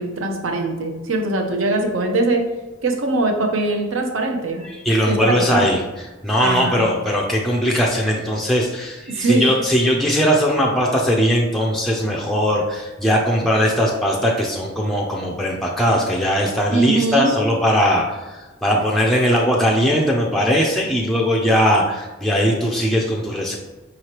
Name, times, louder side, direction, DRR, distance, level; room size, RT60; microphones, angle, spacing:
voice 1, 0.0-2.5 2.8-4.6 5.1-5.7 6.4-6.8 9.1-9.5 16.7-17.3, right 2 dB, 75° right, 3 dB, 0.7 m, -21 dB
voice 2, 4.6-23.6, equal, ahead, -2 dB, 0.3 m, -19 dB
4.8 x 3.1 x 2.9 m, 1.2 s
head